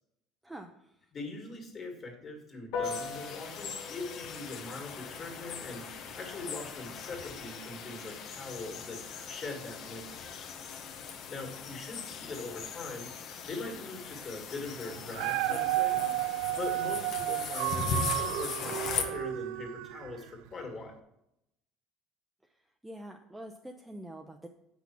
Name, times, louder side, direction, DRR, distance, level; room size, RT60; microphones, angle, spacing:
voice 1, 0.4-1.1 22.4-24.5, right 1 dB, 5° right, 4 dB, 0.5 m, -46 dB
voice 2, 1.1-9.0 9.3-10.1 11.3-13.1 13.5-16.0 16.6-20.9, left 3 dB, 25° left, 2 dB, 2.1 m, -42 dB
Piano, 2.7-12.5, left 4 dB, 75° left, 2.1 m, -45 dB
sound 1, 2.8-19.0, left 6 dB, 40° left, 1.0 m, -40 dB
Dog, 14.9-20.3 20.8-20.9, right 17 dB, 75° right, 0.4 m, -32 dB
8.3 x 6.0 x 5.9 m, 0.78 s
cardioid pair, 175°, 0 cm